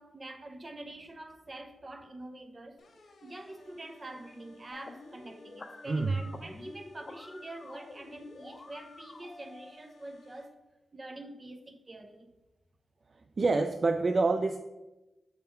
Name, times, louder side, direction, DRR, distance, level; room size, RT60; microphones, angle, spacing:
voice 1, 0.0-2.9 3.2-10.5 10.9-12.3, right 1 dB, 35° right, 0.7 m, -46 dB
sound 1, 2.8-10.5, left 2 dB, 75° left, 0.9 m, -58 dB
sound 2, 4.7-9.7, left 2 dB, 40° left, 0.6 m, -49 dB
voice 2, 5.9-6.2 13.4-14.6, right 3 dB, 50° right, 0.3 m, -26 dB
6.5 x 3.6 x 4.4 m
cardioid pair, 80°, 0 cm